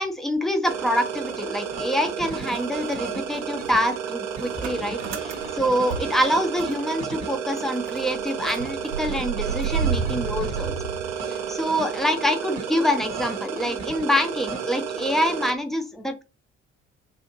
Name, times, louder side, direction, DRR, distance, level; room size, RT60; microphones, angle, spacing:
voice 1, 0.0-10.9 11.3-16.2, equal, ahead, 5 dB, 0.6 m, -26 dB
sound 1, 0.6-15.5, right 7 dB, 45° right, 0.7 m, -32 dB
Motor vehicle (road) / Engine starting, 0.7-2.0 2.3-6.9 7.2-7.3 7.6-11.7, right 7 dB, 80° right, 0.6 m, -32 dB
sound 2, 4.5-7.5 8.0-8.1, right 1 dB, 85° left, 1.5 m, -44 dB
3.6 x 2.5 x 2.7 m, 0.30 s
figure-of-eight pair, 45°, 35 cm